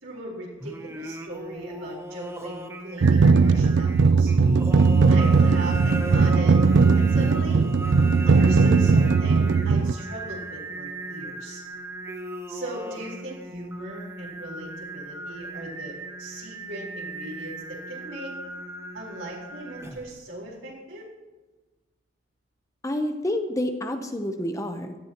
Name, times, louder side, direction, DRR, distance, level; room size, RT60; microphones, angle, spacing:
voice 1, 0.0-4.3 5.1-6.6 6.9-7.7 8.3-11.6 12.5-18.3 18.9-21.1, right 1 dB, 80° right, -4 dB, 4.2 m, -38 dB
Singing, 0.6-20.2, right 1 dB, 15° right, 0.9 m, -37 dB
sound 1, 3.0-9.9, right 4 dB, 65° right, 0.4 m, -18 dB
voice 2, 22.8-24.9, left 1 dB, 15° left, 6 dB, 0.8 m, -28 dB
17.0 x 13.0 x 3.0 m, 1.3 s
head